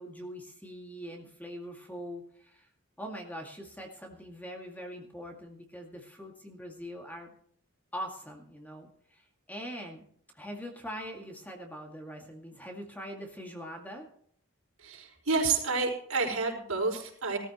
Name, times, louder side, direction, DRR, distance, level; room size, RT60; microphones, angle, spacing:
voice 1, 0.0-2.7 3.0-7.3 7.9-10.0 10.3-14.1, equal, 10° left, 1 dB, 2.1 m, -42 dB
voice 2, 14.8-17.4, right 4 dB, 85° right, -1 dB, 5.0 m, -29 dB
18.5 x 13.5 x 3.1 m, 0.62 s
head